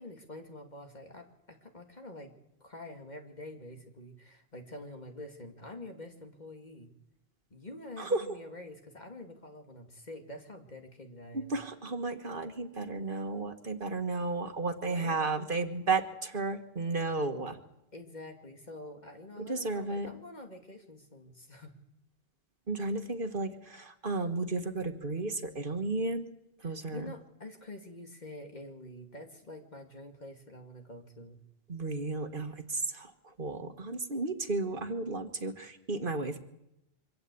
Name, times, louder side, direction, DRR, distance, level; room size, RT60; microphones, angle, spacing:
voice 1, 0.0-2.3 2.6-6.9 7.5-11.6 14.8-15.3 17.9-21.7 26.6-31.4, left 1 dB, 40° left, 3 dB, 2.4 m, -47 dB
voice 2, 11.5-17.6 19.4-20.1 22.7-26.2 26.6-27.0 31.7-33.1 33.4-36.4, right 3 dB, 55° right, 6 dB, 1.7 m, -33 dB
24.5 x 16.5 x 8.4 m, 0.84 s
omnidirectional pair, 1.1 m